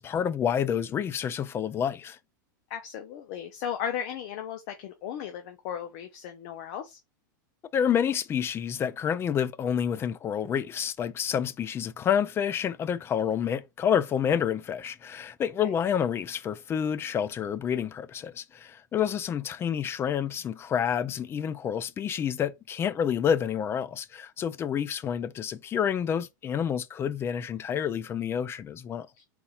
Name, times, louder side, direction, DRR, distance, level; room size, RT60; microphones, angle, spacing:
voice 1, 0.0-2.2 7.7-29.1, left 8 dB, 20° left, 0.4 m, -28 dB
voice 2, 2.7-7.0 15.6-15.7 29.1-29.2, left 9 dB, 55° left, 0.8 m, -36 dB
4.2 x 4.1 x 2.4 m
supercardioid pair, 135°, 11 cm